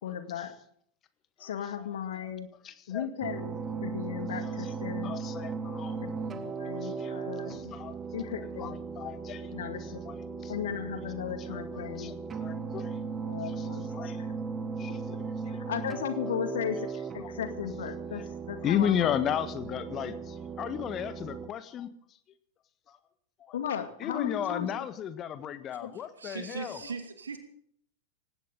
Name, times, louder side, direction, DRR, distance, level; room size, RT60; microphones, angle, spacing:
voice 1, 0.0-0.5 1.4-2.5 2.9-3.5 3.8-5.1 6.0-7.7 8.1-8.8 9.5-10.0 10.5-12.1 13.3-14.3 15.5-19.2 23.5-24.9 25.8-25.9 26.8-26.9, left 9 dB, 60° left, 9 dB, 2.1 m, -36 dB
voice 2, 2.6-3.0 4.4-4.7 5.0-6.0 6.7-7.1 7.4-8.0 8.6-9.5 10.1-10.2 10.4-10.5 11.5-11.6 12.0-13.0 13.6-13.7 13.9-14.2 14.8-15.2 17.2-17.3 18.6-21.9 22.9-23.0 23.4-23.6 24.0-26.8, left 9 dB, 30° left, 12 dB, 1.5 m, -34 dB
sound 1, 3.2-21.5, right 5 dB, 20° right, 1.6 m, -37 dB
voice 3, 25.9-27.4, right 5 dB, 70° right, 7 dB, 2.5 m, -39 dB
18.5 x 17.0 x 3.9 m, 0.65 s
figure-of-eight pair, 90°, 0 cm